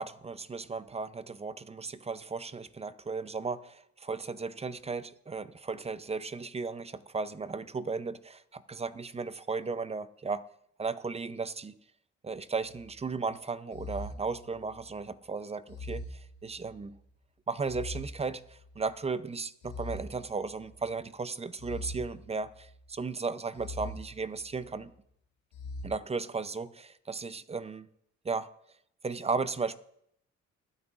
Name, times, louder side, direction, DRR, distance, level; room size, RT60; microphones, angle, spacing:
voice 1, 0.0-10.4 10.8-11.7 12.2-17.0 17.5-24.9 25.8-27.9 28.2-28.5 29.0-29.7, right 4 dB, 20° right, 0.5 m, -35 dB
sound 1, 12.6-13.0 13.7-15.0 15.7-17.0 17.6-18.9 19.6-20.9 21.6-22.9 23.6-24.8 25.5-25.8, left 1 dB, 75° left, 1.7 m, -43 dB
22.0 x 9.5 x 2.4 m
cardioid pair, 90°, 30 cm